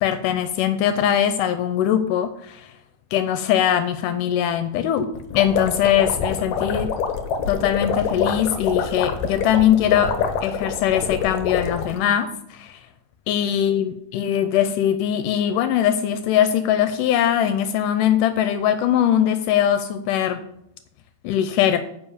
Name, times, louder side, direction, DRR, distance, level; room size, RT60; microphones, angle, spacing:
voice 1, 0.0-2.7 3.1-6.9 7.5-10.1 10.4-12.8 13.3-20.4 21.2-21.8, left 10 dB, 85° left, 10 dB, 2.2 m, -21 dB
sound 1, 5.1-12.0, left 6 dB, 70° left, 2.1 m, -26 dB
9.5 x 5.3 x 7.1 m, 0.77 s
omnidirectional pair, 3.8 m